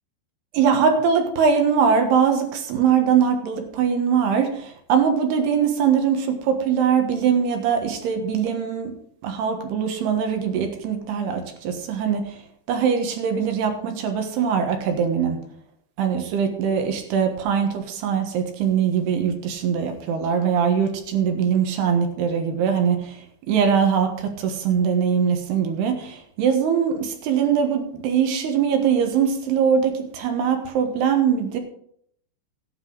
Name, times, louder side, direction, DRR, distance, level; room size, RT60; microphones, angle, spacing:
voice 1, 0.5-8.9 9.2-12.4 12.7-15.4 16.0-23.2 23.5-31.6, right 7 dB, 75° right, 5 dB, 3.3 m, -22 dB
14.5 x 9.7 x 4.0 m, 0.66 s
omnidirectional pair, 4.8 m